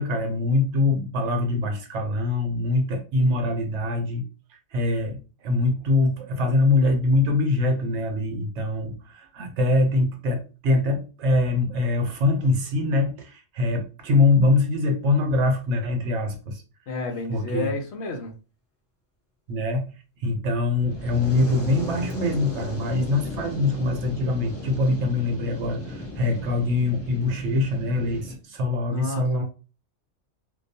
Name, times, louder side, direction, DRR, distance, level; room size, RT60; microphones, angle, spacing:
voice 1, 0.0-4.2 4.7-16.6 17.3-17.7 19.5-19.9 20.2-29.4, left 2 dB, 70° right, 0.9 m, -23 dB
voice 2, 16.9-18.3 28.9-29.4, left 3 dB, 70° left, 0.8 m, -31 dB
Fire, 20.7-28.3, left 1 dB, 15° left, 0.5 m, -36 dB
2.2 x 2.2 x 2.6 m
omnidirectional pair, 1.3 m